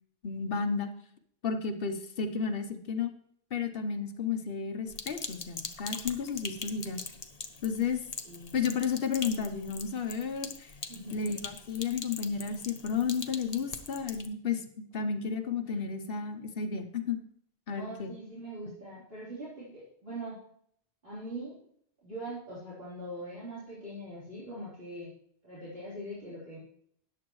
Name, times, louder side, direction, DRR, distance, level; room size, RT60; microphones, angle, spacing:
voice 1, 0.2-0.9 1.4-3.1 3.5-7.0 7.6-8.0 8.5-10.7 11.1-17.2 17.7-18.1, left 6 dB, 65° left, 8 dB, 1.1 m, -32 dB
Sink (filling or washing), 4.9-14.3, left 4 dB, 40° left, 0.9 m, -42 dB
voice 2, 8.2-8.7 10.9-11.3 17.7-20.4 21.0-21.6 22.0-25.1 25.4-26.6, right 1 dB, 65° right, -10 dB, 4.0 m, -42 dB
13.5 x 9.7 x 3.1 m, 0.65 s
omnidirectional pair, 1.1 m